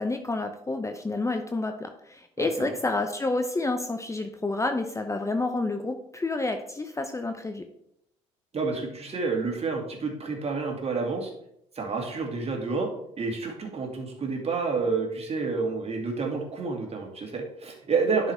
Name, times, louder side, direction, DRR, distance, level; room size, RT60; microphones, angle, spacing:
voice 1, 0.0-7.6, left 2 dB, 15° left, 6 dB, 0.8 m, -29 dB
voice 2, 2.4-2.7 8.5-11.3 11.7-12.9 13.2-18.3, right 4 dB, 35° right, 1 dB, 2.4 m, -29 dB
11.0 x 4.9 x 3.5 m, 0.76 s
hypercardioid pair, 50°, 17 cm